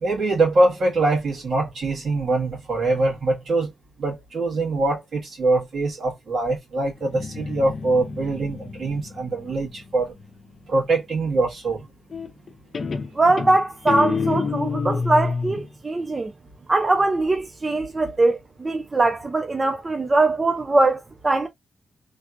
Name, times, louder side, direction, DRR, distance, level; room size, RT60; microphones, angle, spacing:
voice 1, 0.0-3.7 4.0-10.1 10.7-11.9, right 2 dB, 60° right, 1.6 m, -23 dB
Guitar, 7.0-10.6 12.1-12.5 12.7-15.7, left 5 dB, 40° left, 0.6 m, -29 dB
voice 2, 13.2-16.3 16.7-21.5, right 2 dB, 20° right, 0.3 m, -21 dB
3.2 x 2.9 x 2.5 m
wide cardioid pair, 180°, 0 cm